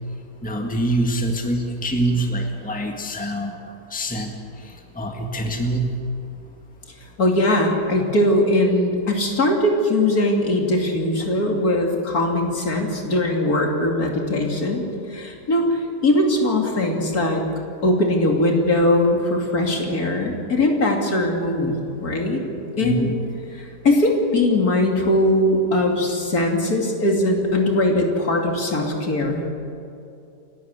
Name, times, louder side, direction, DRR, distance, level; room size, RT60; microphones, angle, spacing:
voice 1, 0.4-3.6 3.9-4.3 4.6-5.9 11.2-11.3 22.8-23.1, right 1 dB, 5° left, 3 dB, 1.8 m, -25 dB
voice 2, 7.2-17.4 17.8-22.4 22.8-23.1 23.8-29.5, left 1 dB, 60° left, 1 dB, 3.2 m, -20 dB
29.0 x 12.5 x 8.3 m, 2.7 s
omnidirectional pair, 1.8 m